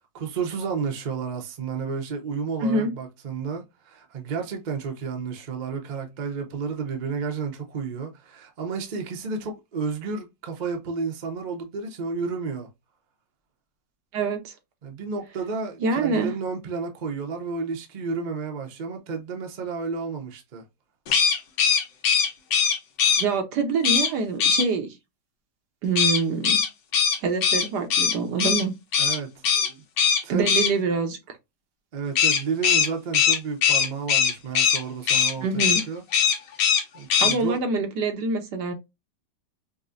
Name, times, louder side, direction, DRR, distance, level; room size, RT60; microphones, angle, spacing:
voice 1, 0.1-12.7 14.8-20.6 29.0-29.8 30.2-30.5 31.9-36.4 36.9-37.6, right 5 dB, 45° right, 0.6 m, -31 dB
voice 2, 2.6-2.9 14.1-14.5 15.8-16.3 23.2-24.9 25.8-26.6 27.2-28.7 30.3-31.2 35.4-35.8 37.2-38.7, right 4 dB, 75° right, 1.4 m, -25 dB
sound 1, 21.1-23.2 23.8-24.1 24.4-24.7 26.0-28.6 28.9-29.2 29.4-29.7 30.0-30.7 32.2-34.8 35.1-35.3 35.6-35.8 36.1-36.8 37.1-37.3, left 7 dB, 85° left, 1.4 m, -21 dB
5.1 x 2.1 x 2.5 m
omnidirectional pair, 1.9 m